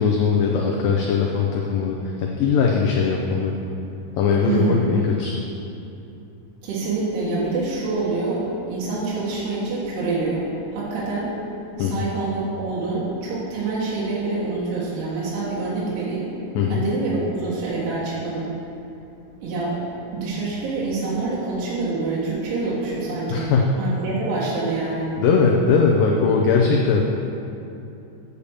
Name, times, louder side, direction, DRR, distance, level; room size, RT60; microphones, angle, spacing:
voice 1, 0.0-3.5 4.2-5.4 11.8-12.0 16.5-16.8 23.3-23.7 25.2-27.0, left 5 dB, 75° left, -1 dB, 2.2 m, -20 dB
voice 2, 4.5-4.8 6.6-10.4 10.7-11.3 11.8-16.3 16.7-18.5 19.4-19.8 20.1-23.5 23.8-25.1, right 3 dB, 80° right, -7 dB, 3.6 m, -26 dB
8.6 x 6.7 x 7.1 m, 2.8 s
omnidirectional pair, 4.6 m